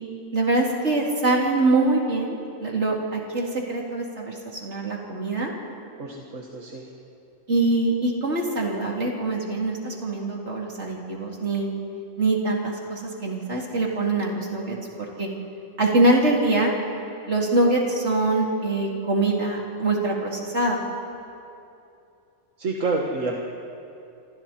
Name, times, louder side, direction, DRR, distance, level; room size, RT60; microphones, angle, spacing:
voice 1, 0.3-5.5 7.5-11.7 12.2-15.3 15.8-16.7 17.3-20.8, right 2 dB, 60° right, -2 dB, 3.5 m, -24 dB
voice 2, 6.0-6.9 22.6-23.4, right 3 dB, 75° right, 0 dB, 2.0 m, -28 dB
28.0 x 27.0 x 4.4 m, 2.7 s
omnidirectional pair, 1.3 m